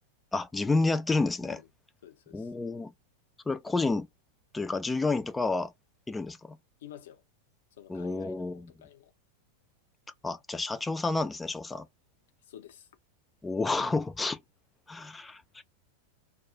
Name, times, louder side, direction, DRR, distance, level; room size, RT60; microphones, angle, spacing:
voice 1, 0.3-1.6 2.3-2.9 3.5-4.1 4.5-5.7 6.1-6.6 7.9-8.7 10.2-11.9 13.4-14.4 14.9-15.6, left 3 dB, 10° left, 0.4 m, -30 dB
voice 2, 2.0-2.5 6.8-7.2 7.8-9.1 12.5-12.9, left 11 dB, 60° left, 0.6 m, -50 dB
2.3 x 2.2 x 3.6 m
figure-of-eight pair, 90°, 0 cm